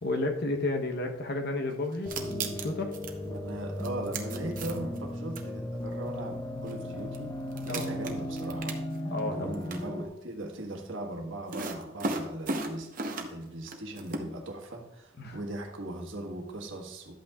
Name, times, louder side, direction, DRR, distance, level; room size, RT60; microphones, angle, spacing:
voice 1, 0.0-2.9 7.6-7.9 9.1-9.5 15.2-15.4, left 2 dB, 50° left, 4 dB, 0.9 m, -32 dB
sound 1, 1.9-3.1 3.8-5.0 5.4-5.5 6.7-6.8 7.1-7.2 7.5-9.2 9.5-9.8 11.5-13.4 13.7-14.2, right 3 dB, 40° right, 0.8 m, -35 dB
sound 2, 2.1-10.1, left 1 dB, 15° left, 0.6 m, -36 dB
voice 2, 3.2-7.3 7.6-8.8 9.3-17.1, right 1 dB, 70° right, 2 dB, 1.4 m, -39 dB
11.5 x 8.4 x 2.4 m, 1.0 s
head